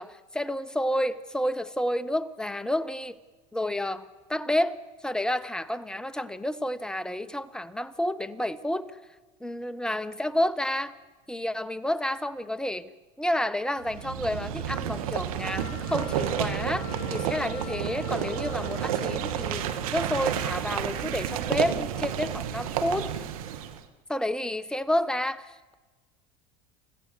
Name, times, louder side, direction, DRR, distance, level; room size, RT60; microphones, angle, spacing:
voice 1, 0.0-3.2 3.5-4.8 5.0-8.9 9.4-10.9 11.3-12.9 13.2-23.1 24.1-25.7, left 1 dB, 5° left, 12 dB, 1.2 m, -30 dB
sound 1, 13.8-23.8, right 9 dB, 80° right, 1.9 m, -31 dB
Wind instrument woodwind instrument, 15.4-20.2, left 13 dB, 45° left, 3.1 m, -44 dB
29.5 x 16.0 x 6.9 m, 1.3 s
hypercardioid pair, 90°, 18 cm